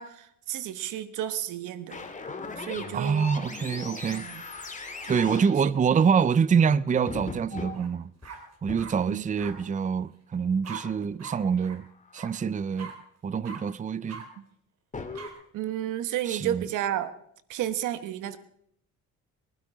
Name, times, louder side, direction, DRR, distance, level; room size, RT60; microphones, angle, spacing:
voice 1, 0.0-2.0 2.6-3.3 4.1-4.4 5.0-5.4 9.1-9.3 15.5-17.1 17.5-18.4, right 11 dB, 90° right, 1.2 m, -32 dB
sound 1, 1.9-5.6 6.4-7.8 8.2-8.3 8.7-8.9 9.4-9.6 12.0-12.4 14.9-15.3, left 4 dB, 25° left, 2.4 m, -38 dB
voice 2, 2.9-4.3 5.1-8.1 8.6-11.8 12.1-12.9 13.2-14.2 16.3-16.7, right 6 dB, 25° right, 0.5 m, -25 dB
sound 2, 7.7-7.9 8.2-8.9 9.4-9.5 10.6-10.8 11.2-11.4 11.6-11.8 12.1-12.3 12.8-12.9 13.4-13.6 14.1-14.2 15.1-15.3, right 5 dB, 60° right, 4.0 m, -41 dB
22.0 x 12.5 x 4.9 m
cardioid pair, 90°, 30 cm